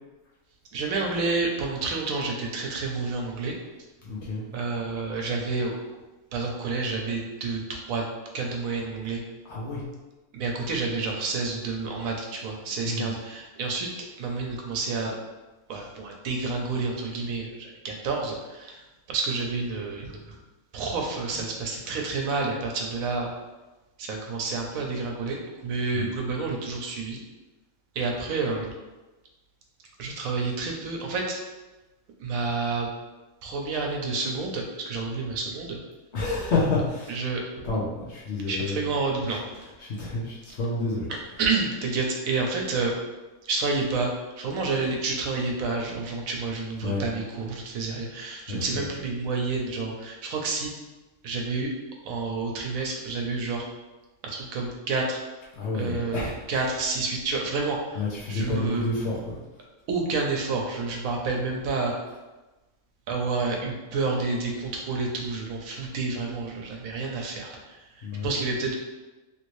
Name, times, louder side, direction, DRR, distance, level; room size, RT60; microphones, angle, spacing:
voice 1, 0.7-3.5 4.5-5.7 6.3-8.0 8.3-9.2 10.3-13.9 14.2-15.1 15.7-18.8 19.1-20.2 20.7-23.3 24.0-27.2 27.9-28.7 30.0-31.4 32.2-32.9 33.4-35.8 37.1-37.4 38.5-39.4 41.4-42.9 43.4-44.1 44.4-50.7 51.2-51.7 52.0-53.7 54.2-55.2 55.7-56.2 56.5-58.0 58.3-58.8 59.9-61.9 63.1-67.8 68.2-68.8, right 3 dB, 75° right, 0 dB, 1.1 m, -29 dB
voice 2, 4.0-4.4 9.4-9.8 12.8-13.1 25.9-26.1 36.1-37.1 37.6-38.9 39.3-41.1 46.8-47.1 48.5-48.9 55.5-56.6 57.9-59.4 68.0-68.3, left 3 dB, 60° left, -6 dB, 0.9 m, -29 dB
3.1 x 2.7 x 3.0 m, 1.1 s
omnidirectional pair, 1.4 m